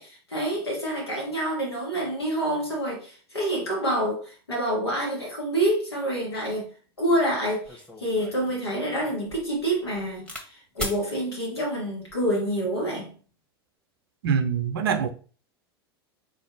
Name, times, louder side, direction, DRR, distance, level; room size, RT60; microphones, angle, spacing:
voice 1, 0.0-6.7 7.0-13.1, right 1 dB, 85° left, 1.6 m, -27 dB
sound 1, 7.1-7.2 7.6-10.5 10.8-11.0 11.9-12.3, equal, 5° left, 1.1 m, -38 dB
voice 2, 14.2-15.1, right 7 dB, 70° right, 0.6 m, -24 dB
3.9 x 2.6 x 3.8 m
figure-of-eight pair, 85°, 13 cm